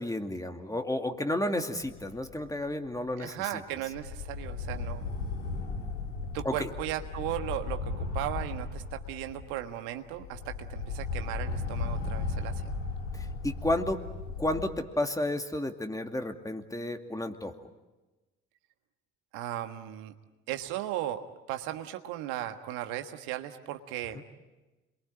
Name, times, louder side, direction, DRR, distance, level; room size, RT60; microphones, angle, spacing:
voice 1, 0.0-3.6 6.4-6.7 13.1-14.0 14.4-17.6 24.1-24.2, left 1 dB, 10° left, 5 dB, 2.5 m, -32 dB
sound 1, 1.8-2.6 2.9-3.1 3.9-9.7 10.0-14.7, left 3 dB, 90° left, 3.0 m, -36 dB
voice 2, 3.2-5.1 6.3-12.7 19.3-20.1 20.5-21.2 21.5-24.2, right 13 dB, 70° right, 7 dB, 1.6 m, -36 dB
27.5 x 23.0 x 8.9 m, 1.1 s
hypercardioid pair, 50°, 36 cm